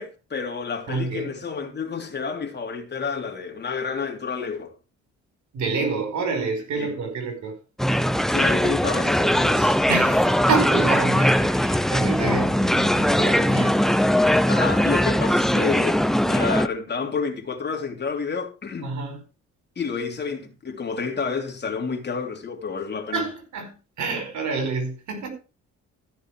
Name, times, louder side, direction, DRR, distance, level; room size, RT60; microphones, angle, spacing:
voice 1, 0.0-4.7 6.8-6.9 8.3-9.8 12.2-12.4 14.5-19.0 19.7-23.2, left 5 dB, 35° left, 3.2 m, -29 dB
voice 2, 0.9-1.3 5.5-7.5 9.9-14.2 18.8-19.2 23.1-25.3, right 4 dB, 70° right, 4.9 m, -28 dB
sound 1, 7.8-16.7, equal, ahead, 0.7 m, -20 dB
14.5 x 6.5 x 4.8 m
cardioid pair, 90°, 30 cm